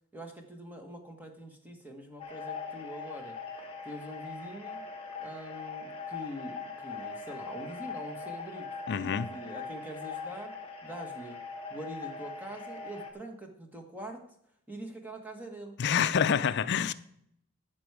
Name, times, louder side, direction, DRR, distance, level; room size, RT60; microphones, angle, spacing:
voice 1, 0.1-3.4 3.8-4.8 5.2-8.7 8.9-10.5 10.8-11.4 11.7-14.2 14.7-15.7, right 1 dB, 10° right, 1.3 m, -44 dB
sound 1, 2.2-13.1, left 4 dB, 25° left, 1.4 m, -41 dB
voice 2, 8.9-9.3 15.8-16.9, left 7 dB, 50° left, 0.4 m, -27 dB
14.0 x 6.2 x 4.8 m
head